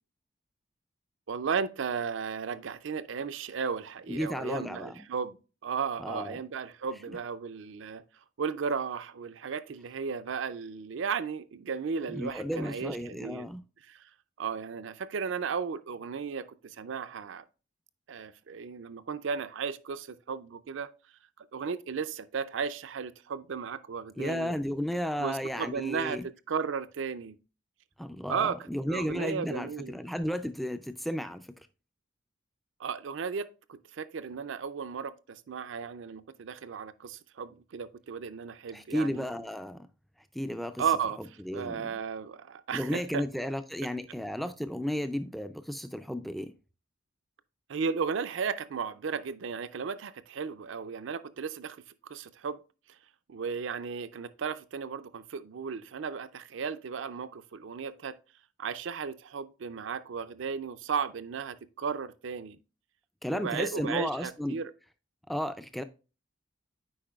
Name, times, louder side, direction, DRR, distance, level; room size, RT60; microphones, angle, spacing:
voice 1, 1.3-5.4 5.6-8.0 8.4-13.5 14.4-17.4 18.1-20.9 21.5-24.6 25.2-27.4 28.3-30.0 32.8-39.3 40.8-43.3 45.0-45.1 47.7-52.6 53.3-58.2 58.6-62.6 63.3-64.7, right 6 dB, 70° right, 0.4 m, -35 dB
voice 2, 4.1-5.0 6.0-6.4 12.1-13.6 24.2-26.3 28.0-31.7 38.7-39.9 40.3-40.8 41.4-42.0 42.7-46.5 63.2-64.6 65.3-65.8, equal, ahead, 0.3 m, -33 dB
8.6 x 5.0 x 2.3 m
head